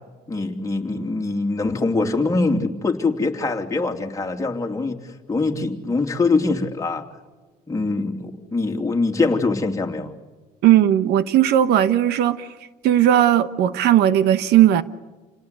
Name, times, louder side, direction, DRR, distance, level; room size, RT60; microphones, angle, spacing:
voice 1, 0.3-5.0 5.3-7.0 7.7-10.1, left 3 dB, 20° left, 2.9 m, -23 dB
voice 2, 10.6-12.5 12.8-14.8, right 11 dB, 80° right, 1.2 m, -17 dB
29.0 x 19.0 x 8.3 m
cardioid pair, 110°, 17 cm